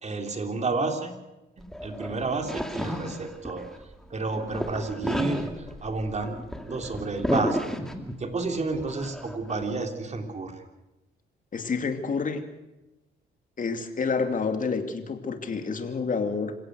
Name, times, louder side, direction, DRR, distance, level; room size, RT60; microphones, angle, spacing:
voice 1, 0.0-1.1 1.6-3.7 4.1-5.5 5.8-6.4 6.7-7.8 8.2-10.6, right 3 dB, 35° right, 4 dB, 3.5 m, -30 dB
sound 1, 1.6-3.9 4.3-8.3 8.7-9.7, equal, ahead, 2.3 m, -32 dB
voice 2, 11.5-12.4 13.6-16.6, left 5 dB, 40° left, 6 dB, 2.7 m, -28 dB
27.0 x 16.5 x 6.4 m, 1.0 s
cardioid pair, 90°, 20 cm